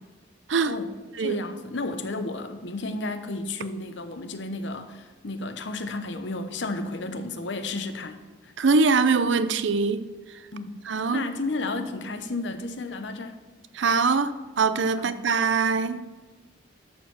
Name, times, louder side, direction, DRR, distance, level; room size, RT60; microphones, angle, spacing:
voice 1, 1.2-8.5 10.5-10.8 11.1-13.4 15.0-15.2, left 2 dB, 65° left, 0.8 m, -33 dB
voice 2, 8.6-10.0 10.9-11.2 13.7-16.0, right 4 dB, 70° right, 0.6 m, -23 dB
12.0 x 4.5 x 6.9 m
head